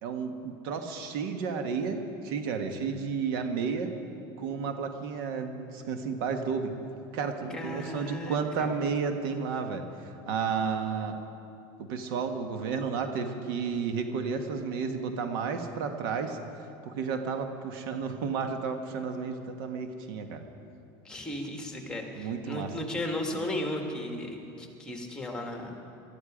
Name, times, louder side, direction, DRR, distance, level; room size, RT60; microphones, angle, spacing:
voice 1, 0.0-3.9 4.4-6.7 7.1-11.1 11.8-16.4 16.9-20.4 22.1-22.7, right 5 dB, 80° right, 6 dB, 1.4 m, -32 dB
voice 2, 7.5-8.7 21.1-25.8, left 1 dB, 5° left, 2 dB, 2.1 m, -35 dB
19.0 x 13.5 x 5.1 m, 2.6 s
supercardioid pair, 130°, 12 cm